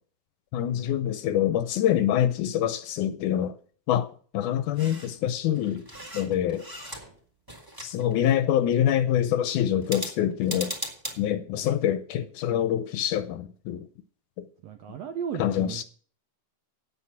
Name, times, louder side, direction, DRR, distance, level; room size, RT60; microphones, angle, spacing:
voice 1, 0.5-3.5 3.9-4.1 4.3-5.8 6.1-6.7 7.8-10.7 11.2-13.9 15.4-15.8, left 11 dB, 75° left, 2.0 m, -25 dB
sound 1, 4.7-5.2 5.5-7.2 7.5-8.4 9.8-11.2, equal, 5° right, 2.2 m, -38 dB
voice 2, 14.6-15.8, right 7 dB, 80° right, 1.4 m, -35 dB
9.3 x 8.6 x 5.8 m
omnidirectional pair, 4.0 m